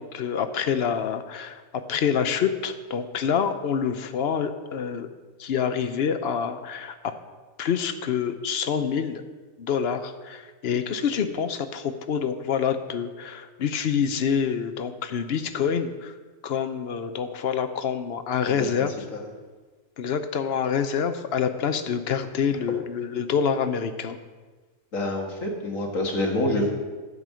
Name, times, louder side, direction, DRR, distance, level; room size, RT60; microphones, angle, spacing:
voice 1, 0.0-5.1 5.4-7.1 7.6-9.2 9.6-16.1 16.4-18.9 20.0-24.2, left 7 dB, 55° left, 9 dB, 0.9 m, -27 dB
voice 2, 24.9-26.7, left 1 dB, 90° left, 1 dB, 2.1 m, -27 dB
11.5 x 5.4 x 7.5 m, 1.3 s
omnidirectional pair, 1.3 m